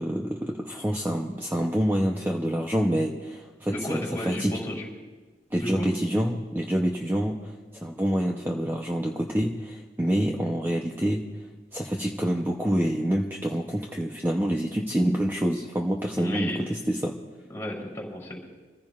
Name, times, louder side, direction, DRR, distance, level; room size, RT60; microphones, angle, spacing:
voice 1, 0.0-4.5 5.5-11.3 11.7-17.1, equal, 10° right, 0 dB, 0.7 m, -27 dB
voice 2, 3.7-4.9 5.6-5.9 16.2-16.6 17.5-18.4, left 1 dB, 15° left, -2 dB, 3.5 m, -33 dB
26.5 x 15.0 x 2.5 m, 1.3 s
head